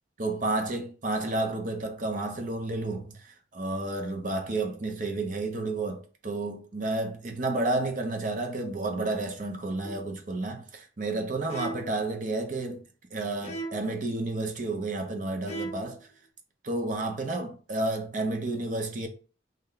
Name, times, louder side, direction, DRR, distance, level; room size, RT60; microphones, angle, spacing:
voice 1, 0.2-12.8 13.1-16.0 16.6-19.1, right 2 dB, 45° right, 0.7 m, -31 dB
sound 1, 9.8-10.2 11.5-12.1 13.4-14.0 15.5-16.0, right 2 dB, 35° left, 0.5 m, -38 dB
3.3 x 2.2 x 3.8 m
head